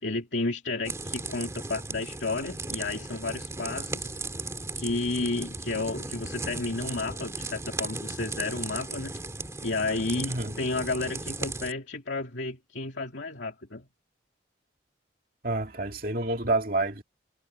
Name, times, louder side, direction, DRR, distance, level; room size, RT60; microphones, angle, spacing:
voice 1, 0.0-4.1 4.8-9.2 9.6-13.9, left 3 dB, 80° left, 2.4 m, -32 dB
sound 1, 0.8-11.7, right 3 dB, 15° right, 2.6 m, -36 dB
voice 2, 15.4-17.0, right 2 dB, 50° right, 2.4 m, -28 dB
head